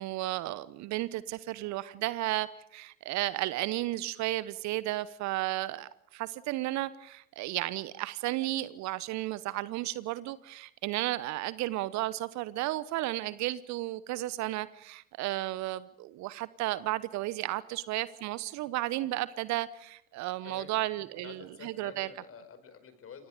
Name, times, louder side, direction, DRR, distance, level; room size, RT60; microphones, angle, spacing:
voice 1, 0.0-22.1, right 16 dB, 45° right, 1.0 m, -33 dB
voice 2, 20.4-23.3, left 6 dB, 35° left, 5.1 m, -49 dB
29.5 x 26.0 x 5.1 m
figure-of-eight pair, 70°, 40 cm